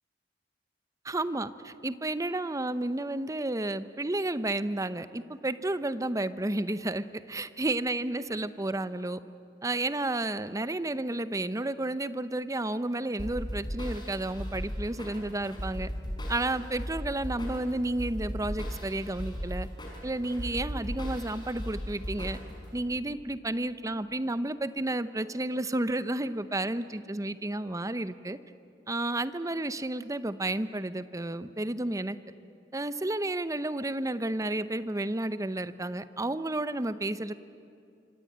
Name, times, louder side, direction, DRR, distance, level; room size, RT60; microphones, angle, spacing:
voice 1, 1.0-9.2 9.6-15.9 16.3-19.7 20.0-22.4 22.7-28.4 28.9-32.2 32.7-37.3, right 2 dB, 20° right, 13 dB, 0.8 m, -31 dB
sound 1, 13.2-22.7, equal, 25° left, 5.3 m, -37 dB
26.0 x 25.5 x 8.8 m, 2.5 s
head